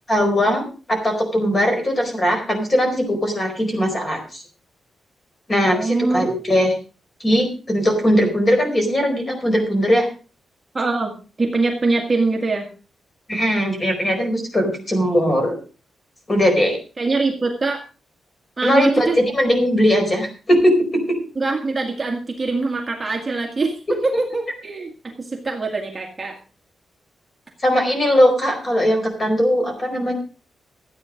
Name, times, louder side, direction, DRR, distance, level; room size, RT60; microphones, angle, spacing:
voice 1, 0.1-4.4 5.5-6.7 7.2-10.1 13.3-15.6 16.3-16.8 18.6-21.2 27.6-30.1, equal, 25° left, 3 dB, 4.5 m, -19 dB
voice 2, 5.7-6.3 10.7-11.1 11.4-12.7 17.0-17.8 18.6-19.2 21.4-26.4, right 3 dB, 20° right, 1 dB, 1.8 m, -23 dB
14.0 x 9.0 x 5.1 m, 0.35 s
wide cardioid pair, 165°, 0 cm